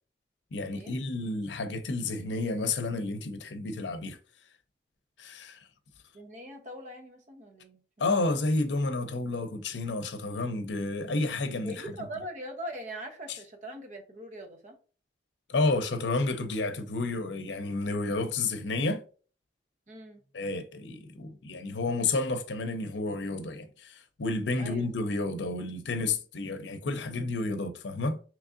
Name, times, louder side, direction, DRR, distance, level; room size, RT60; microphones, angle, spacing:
voice 1, 0.5-4.2 5.2-5.6 8.0-11.9 13.3-13.4 15.5-19.0 20.3-28.2, left 3 dB, 90° left, 0.6 m, -31 dB
voice 2, 6.1-7.8 11.6-14.8 19.9-20.2 24.6-24.9, equal, 45° right, 0.8 m, -41 dB
3.6 x 3.0 x 2.5 m
head